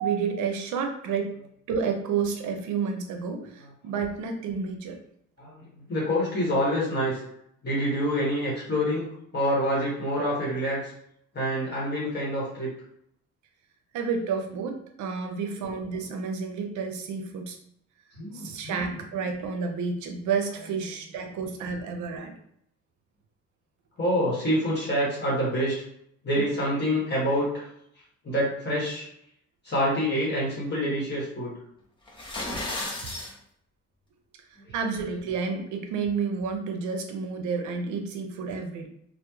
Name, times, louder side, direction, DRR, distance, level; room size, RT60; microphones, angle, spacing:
voice 1, 0.0-1.3 1.7-5.0 13.9-17.6 18.3-22.3 33.0-33.1 34.7-38.9, right 5 dB, 75° right, 4 dB, 0.5 m, -30 dB
voice 2, 5.4-7.2 7.6-9.0 9.3-10.9 11.3-12.7 18.2-19.0 24.0-25.8 26.2-27.7 28.2-29.1 29.6-31.5 34.7-34.8, equal, 35° left, -7 dB, 1.0 m, -27 dB
sound 1, 32.1-33.3, left 1 dB, 15° left, 0.7 m, -33 dB
2.8 x 2.1 x 2.3 m, 0.72 s
cardioid pair, 90°, 30 cm